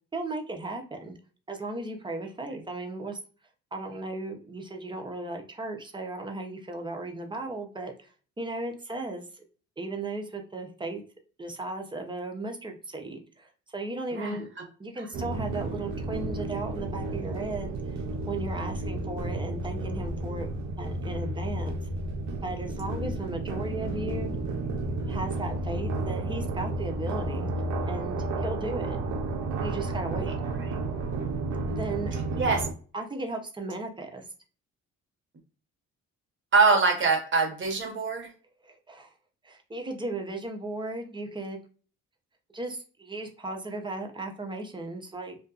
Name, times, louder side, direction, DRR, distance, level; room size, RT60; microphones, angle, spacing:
voice 1, 0.1-1.2 1.5-3.2 3.7-8.1 8.4-9.4 9.8-11.0 11.4-14.5 14.8-18.0 18.3-20.5 20.8-21.8 22.3-24.3 25.1-27.5 27.9-29.0 29.6-30.3 31.7-32.2 32.9-34.2 38.6-39.1 39.4-41.6 42.5-45.4, right 2 dB, 15° right, 3 dB, 0.6 m, -36 dB
sound 1, 15.1-32.7, right 2 dB, 70° right, 0.6 m, -32 dB
voice 2, 36.5-38.3, right 4 dB, 40° right, 2 dB, 1.1 m, -24 dB
2.5 x 2.2 x 2.4 m, 0.39 s
cardioid pair, 90°, 30 cm